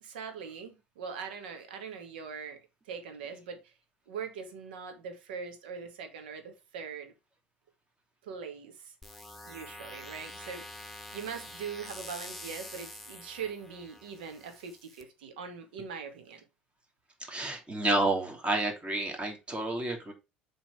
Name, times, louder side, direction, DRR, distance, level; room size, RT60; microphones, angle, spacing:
voice 1, 0.0-2.6 2.9-3.7 4.1-7.1 8.2-8.9 9.5-10.6 11.1-16.4, right 6 dB, 75° right, 1.9 m, -41 dB
sound 1, 9.0-15.0, left 1 dB, 5° left, 1.6 m, -46 dB
voice 2, 17.3-20.1, right 2 dB, 20° right, 2.9 m, -30 dB
7.4 x 4.0 x 4.9 m
figure-of-eight pair, 65°, 5 cm